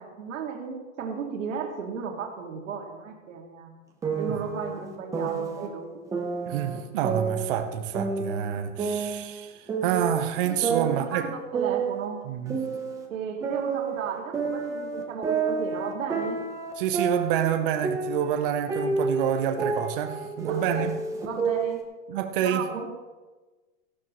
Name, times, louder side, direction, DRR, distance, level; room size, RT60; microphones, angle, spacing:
voice 1, 0.0-3.7 4.2-6.1 10.4-12.2 13.1-16.4 20.5-20.9 21.2-21.8 22.4-23.0, right 6 dB, 85° right, 2.4 m, -34 dB
sound 1, 4.0-5.7 6.1-7.7 7.9-10.2 10.6-13.1 13.4-17.5 17.8-21.8, right 5 dB, 10° right, 0.8 m, -30 dB
voice 2, 6.4-11.3 12.2-12.6 16.8-20.9 22.1-23.1, right 10 dB, 45° right, 0.9 m, -28 dB
15.5 x 12.0 x 3.1 m
supercardioid pair, 165°, 38 cm